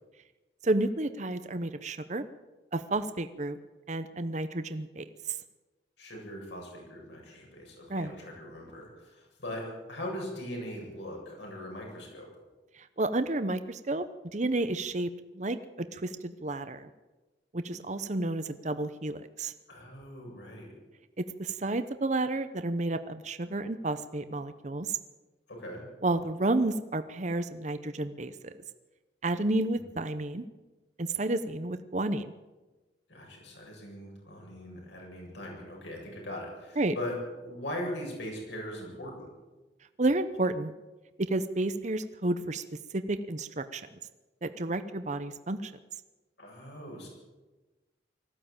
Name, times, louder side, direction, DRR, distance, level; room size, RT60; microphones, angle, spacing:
voice 1, 0.6-2.2 2.7-3.6 3.9-5.4 7.9-8.1 12.7-14.0 14.3-16.9 17.5-19.5 21.2-25.0 26.0-28.5 29.2-30.4 31.0-32.3 36.8-36.9 40.0-40.7 41.2-42.6 42.9-43.8 44.4-45.7, right 2 dB, 40° right, 10 dB, 0.9 m, -31 dB
voice 2, 6.0-9.6 9.9-12.3 19.7-20.7 25.5-25.8 29.7-29.8 33.1-39.3 46.4-47.1, left 1 dB, 75° left, 0 dB, 7.9 m, -40 dB
19.5 x 15.0 x 8.9 m, 1.2 s
head